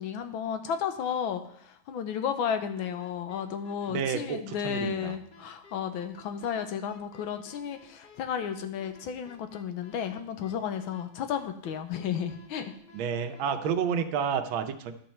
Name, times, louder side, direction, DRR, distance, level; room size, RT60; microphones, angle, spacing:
voice 1, 0.0-12.7, left 8 dB, 75° left, 8 dB, 1.5 m, -33 dB
sound 1, 2.8-13.7, left 5 dB, 55° left, 1.9 m, -54 dB
voice 2, 3.9-5.1 12.9-14.9, right 7 dB, 70° right, 7 dB, 1.5 m, -30 dB
13.0 x 5.3 x 4.4 m, 0.65 s
omnidirectional pair, 2.3 m